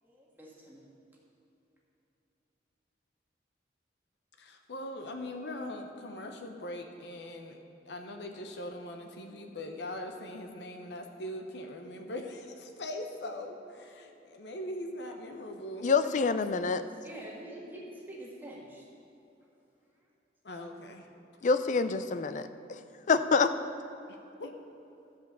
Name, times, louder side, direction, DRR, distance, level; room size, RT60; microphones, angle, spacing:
voice 1, 0.0-0.8 15.6-15.7 16.0-16.3 16.9-18.9, equal, 10° right, -4 dB, 1.5 m, -46 dB
voice 2, 4.4-7.6 7.9-15.9 20.4-21.1 24.1-24.6, left 1 dB, 70° left, 4 dB, 0.9 m, -41 dB
voice 3, 15.8-16.8 21.4-22.5 23.1-23.5, left 4 dB, 45° left, 11 dB, 0.4 m, -26 dB
13.5 x 5.2 x 6.8 m, 2.7 s
head